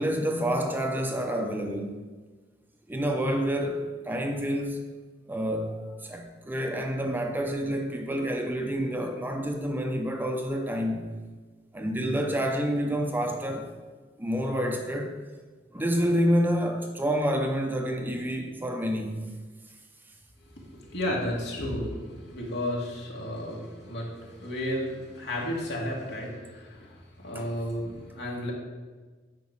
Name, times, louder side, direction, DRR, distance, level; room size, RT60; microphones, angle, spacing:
voice 1, 0.0-2.0 2.9-4.8 5.3-11.1 11.7-13.7 14.2-15.2 15.7-19.3 27.3-27.5, equal, 10° right, 3 dB, 0.7 m, -28 dB
voice 2, 20.6-28.5, left 1 dB, 65° left, -2 dB, 2.4 m, -33 dB
9.3 x 5.2 x 6.0 m, 1.4 s
head